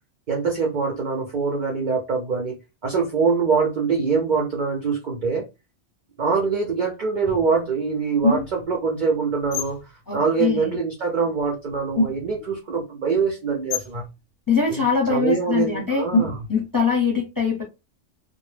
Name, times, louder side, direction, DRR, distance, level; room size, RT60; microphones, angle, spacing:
voice 1, 0.3-5.5 6.2-9.8 10.1-14.1 14.7-14.8 15.1-16.4, right 5 dB, 60° right, 0.5 m, -24 dB
sound 1, 7.3-7.5 8.2-8.8 9.4-9.8 11.4-11.5 11.7-12.5 13.7-14.0 16.1-16.6, left 2 dB, 90° left, 1.0 m, -25 dB
voice 2, 10.1-10.8 14.5-16.0 16.5-17.6, left 5 dB, 20° left, 0.6 m, -22 dB
2.1 x 2.0 x 3.1 m
omnidirectional pair, 1.3 m